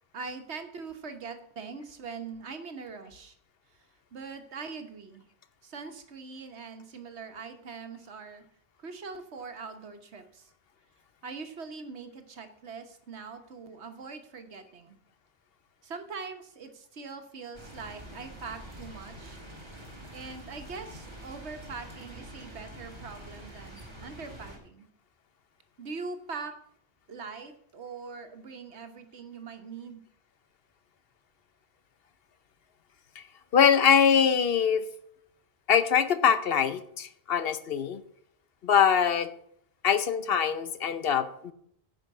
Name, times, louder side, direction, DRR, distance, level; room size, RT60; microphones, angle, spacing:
voice 1, 0.1-3.3 3.7-3.8 4.1-5.2 5.6-8.4 8.8-10.5 11.2-15.0 15.8-19.4 20.1-24.9 25.8-26.5 27.1-30.0, right 4 dB, 90° right, 7 dB, 1.5 m, -42 dB
sound 1, 17.5-24.6, right 1 dB, 25° right, 2.4 m, -46 dB
voice 2, 33.5-34.8 35.7-38.0 38.6-39.3 39.8-41.5, left 7 dB, 65° left, 12 dB, 1.0 m, -23 dB
10.0 x 5.2 x 7.2 m, 0.70 s
omnidirectional pair, 1.1 m